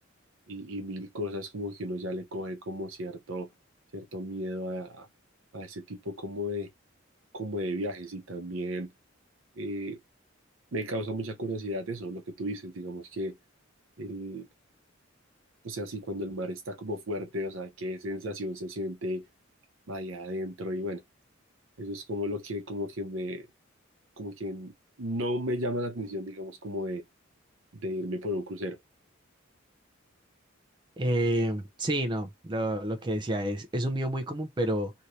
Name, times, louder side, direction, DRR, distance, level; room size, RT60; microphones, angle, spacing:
voice 1, 0.5-3.5 3.9-5.1 5.5-6.7 7.3-8.9 9.6-10.0 10.7-13.4 14.0-14.5 15.6-19.2 19.9-21.0 21.8-23.5 24.2-27.0 27.7-28.8, equal, 70° right, 0.8 m, -34 dB
voice 2, 31.0-34.9, right 1 dB, 20° right, 0.5 m, -29 dB
2.8 x 2.6 x 3.1 m
head